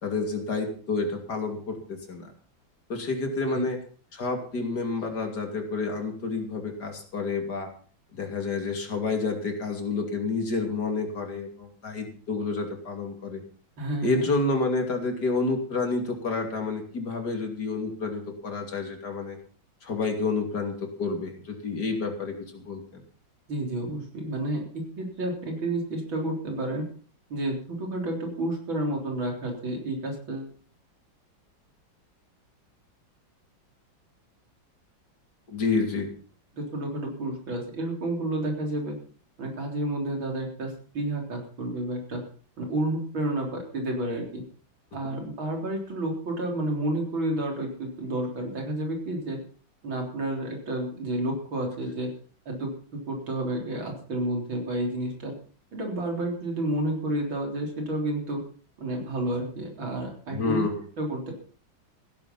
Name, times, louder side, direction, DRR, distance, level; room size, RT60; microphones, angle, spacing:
voice 1, 0.0-2.3 2.9-3.8 4.1-7.7 8.1-13.4 14.0-19.4 19.8-23.0 35.5-36.1 60.3-60.7, left 3 dB, 55° left, 4 dB, 3.2 m, -29 dB
voice 2, 13.8-14.3 23.5-26.9 27.3-30.5 36.5-38.9 39.4-42.2 42.6-44.4 44.9-49.4 49.8-52.1 52.5-55.3 55.7-58.4 58.8-60.6 61.0-61.3, right 1 dB, 85° right, 1 dB, 4.6 m, -30 dB
16.0 x 10.5 x 5.6 m, 0.43 s
omnidirectional pair, 2.1 m